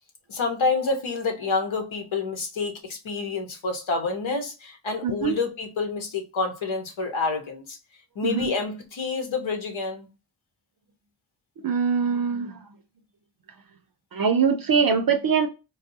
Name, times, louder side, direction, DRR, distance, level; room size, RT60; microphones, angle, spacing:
voice 1, 0.3-7.8 8.1-10.1, left 4 dB, 85° left, 1.0 m, -28 dB
voice 2, 5.0-5.4 8.2-8.5 11.6-12.6 14.1-15.5, right 6 dB, 50° right, 0.5 m, -23 dB
3.3 x 2.3 x 2.7 m
cardioid pair, 60°, 46 cm